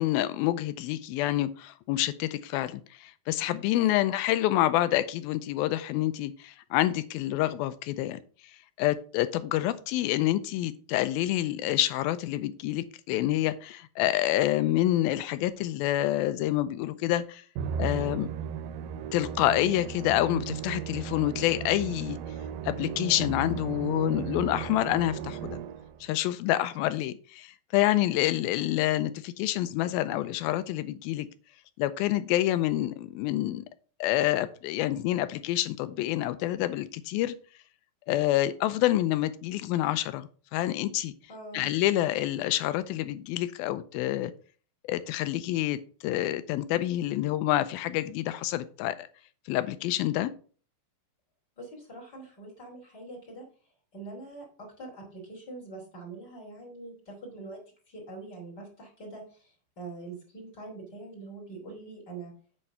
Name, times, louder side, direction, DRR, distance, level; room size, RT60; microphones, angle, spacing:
voice 1, 0.0-8.2 8.8-17.4 17.8-18.3 19.1-22.2 22.6-25.5 26.0-31.3 31.8-33.6 34.0-37.4 38.1-41.1 41.5-44.3 44.9-49.1 49.5-50.3, left 14 dB, 90° left, 2.5 m, -27 dB
voice 2, 3.8-4.1 41.3-41.7 51.6-53.4 53.9-57.6 57.9-62.3, right 3 dB, 30° left, 3.3 m, -44 dB
Musical instrument, 17.6-26.0, right 8 dB, 85° right, 2.4 m, -36 dB
8.6 x 4.4 x 5.5 m
omnidirectional pair, 4.2 m